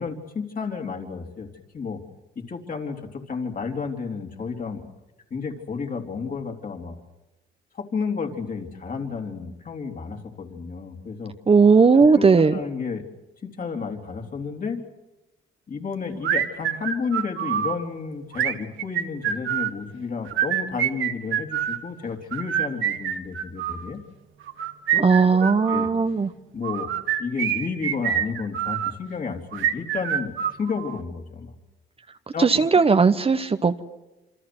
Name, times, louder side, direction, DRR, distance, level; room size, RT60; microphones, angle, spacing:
voice 1, 0.0-1.5 1.7-2.0 2.4-4.8 5.3-6.9 7.7-11.3 11.9-13.1 13.4-14.8 15.7-24.0 24.9-25.0 25.3-25.9 26.5-26.9 27.2-31.5 32.3-32.6, left 5 dB, 45° left, 2 dB, 3.6 m, -31 dB
voice 2, 11.5-12.5 25.0-26.3 32.4-33.8, right 5 dB, 30° right, 9 dB, 1.0 m, -17 dB
sound 1, 16.2-17.8 18.3-19.8 20.3-21.8 22.3-23.9 24.5-25.9 26.6-28.9 29.5-31.0, right 10 dB, 80° right, 1.7 m, -26 dB
27.0 x 25.0 x 6.2 m, 1.0 s
cardioid pair, 90°, 20 cm